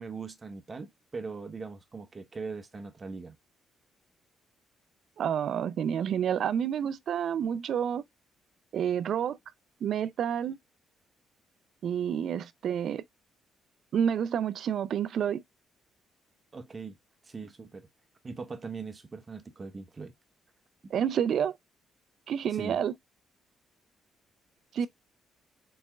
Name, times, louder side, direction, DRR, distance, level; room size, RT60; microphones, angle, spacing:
voice 1, 0.0-3.4 16.5-17.0 17.2-17.9 18.2-20.1 22.5-22.8, right 4 dB, 30° right, 0.9 m, -40 dB
voice 2, 5.2-8.0 8.7-9.4 9.8-10.6 11.8-13.0 13.9-15.4 20.9-21.6 22.3-22.9 24.7-24.9, right 8 dB, 65° right, 0.4 m, -29 dB
4.3 x 4.2 x 2.3 m
cardioid pair, 90°, 0 cm